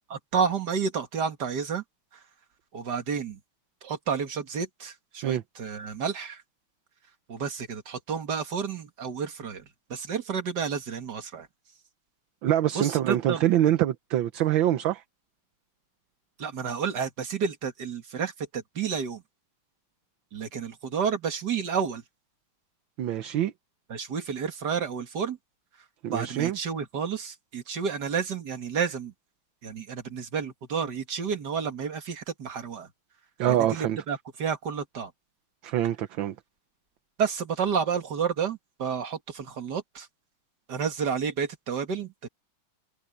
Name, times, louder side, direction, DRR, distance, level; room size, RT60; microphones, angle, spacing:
voice 1, 0.1-1.8 2.1-2.2 2.7-3.4 3.8-6.4 7.3-11.5 12.7-13.4 16.4-19.2 20.3-22.0 23.9-25.4 26.1-29.1 29.6-32.9 33.5-35.1 37.2-40.1 40.7-42.3, right 6 dB, 55° right, 2.4 m, -30 dB
voice 2, 12.4-15.0 23.0-23.5 26.0-26.6 33.4-34.0 35.6-36.3, right 12 dB, 70° right, 1.6 m, -25 dB
omnidirectional pair, 2.3 m